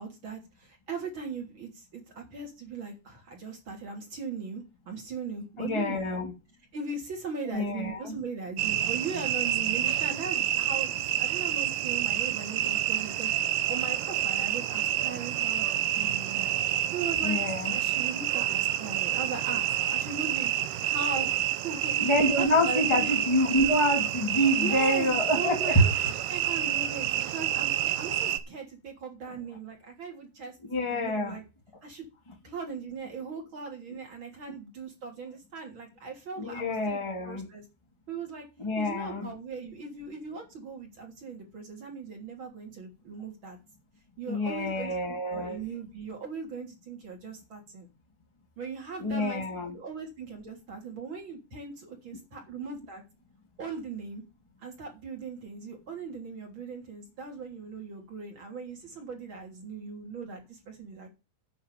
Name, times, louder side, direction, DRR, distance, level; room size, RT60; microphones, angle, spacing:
voice 1, 0.0-6.2 6.7-15.7 15.9-16.5 16.9-17.4 17.7-20.5 20.8-22.1 22.4-23.2 24.6-25.9 26.3-30.5 30.8-31.4 31.8-32.1 32.4-37.6 38.1-38.5 38.8-43.6 44.2-47.9 48.6-49.4 49.7-53.0 53.6-54.2 54.6-61.1, right 4 dB, 30° right, 3.4 m, -39 dB
voice 2, 5.6-6.3 7.5-8.2 17.2-17.8 22.0-26.1 30.7-31.4 36.4-37.5 38.6-39.3 44.3-45.6 49.0-49.8, equal, 40° left, 0.4 m, -27 dB
sound 1, 8.6-28.4, right 12 dB, 75° right, 2.6 m, -28 dB
9.5 x 5.4 x 8.1 m
omnidirectional pair, 5.0 m